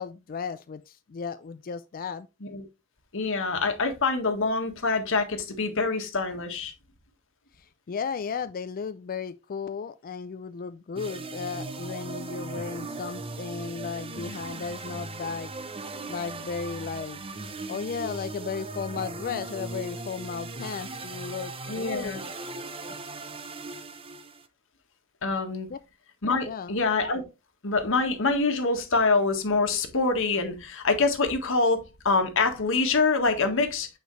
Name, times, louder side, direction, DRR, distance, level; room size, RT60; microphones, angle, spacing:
voice 1, 0.0-2.3 7.6-15.5 16.1-17.2 17.7-22.1 22.8-22.9 25.7-25.8 26.5-26.7, left 6 dB, 40° left, 0.4 m, -35 dB
voice 2, 3.1-6.7 21.7-22.2 25.2-25.7 26.2-27.2 27.6-33.9, left 3 dB, 65° left, 1.6 m, -25 dB
sound 1, 11.0-24.5, right 3 dB, 25° right, 0.7 m, -38 dB
9.1 x 4.8 x 3.2 m
head